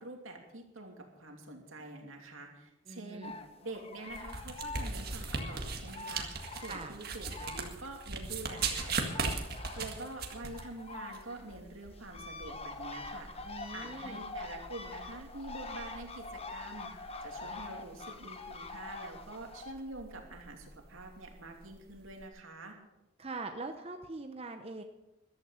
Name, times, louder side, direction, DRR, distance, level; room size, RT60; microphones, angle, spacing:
voice 1, 0.0-3.3 3.6-9.3 9.8-22.8, right 2 dB, 80° right, 3 dB, 2.7 m, -46 dB
voice 2, 2.9-3.3 6.7-7.0 13.4-14.2 23.2-24.8, right 3 dB, 30° right, 6 dB, 0.8 m, -42 dB
sound 1, 3.2-8.0 8.3-19.7, left 3 dB, 30° left, 1.1 m, -45 dB
sound 2, 4.1-22.3, right 4 dB, 50° right, 1.9 m, -41 dB
14.5 x 12.5 x 5.7 m, 0.95 s
head